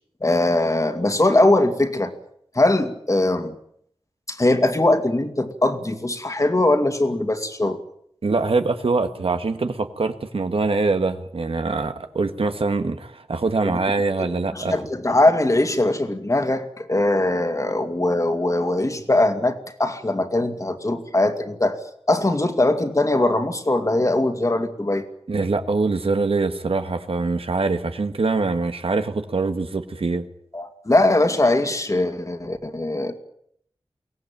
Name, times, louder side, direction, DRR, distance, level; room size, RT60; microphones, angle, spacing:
voice 1, 0.2-2.1 2.5-3.6 4.3-7.8 13.6-13.8 14.5-21.8 22.1-25.1 30.5-33.2, left 2 dB, 35° left, 6 dB, 2.4 m, -21 dB
voice 2, 8.2-14.7 25.3-30.3, right 3 dB, 75° right, 8 dB, 1.7 m, -23 dB
23.0 x 17.5 x 9.1 m, 0.71 s
wide cardioid pair, 85°, 10 cm